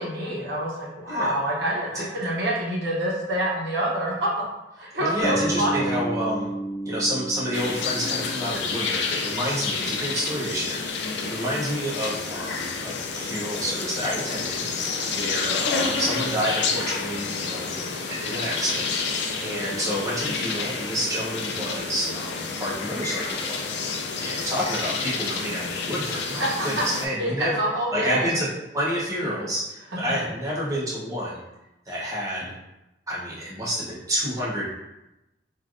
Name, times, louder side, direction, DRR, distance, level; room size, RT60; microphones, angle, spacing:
voice 1, 0.0-4.3 4.8-6.0 26.4-26.8 27.2-28.4, right 1 dB, 70° right, -5 dB, 0.8 m, -26 dB
voice 2, 5.0-6.5 6.8-14.6 15.1-17.7 18.1-18.9 19.4-23.6 24.2-27.6 27.9-28.5 28.7-31.4 31.9-32.5 33.1-34.7, equal, 20° right, -7 dB, 0.9 m, -29 dB
Bass guitar, 5.2-9.1, right 1 dB, 5° left, 1.3 m, -32 dB
sound 1, 7.5-27.1, left 4 dB, 70° left, 0.4 m, -29 dB
3.2 x 2.5 x 2.5 m, 0.94 s
head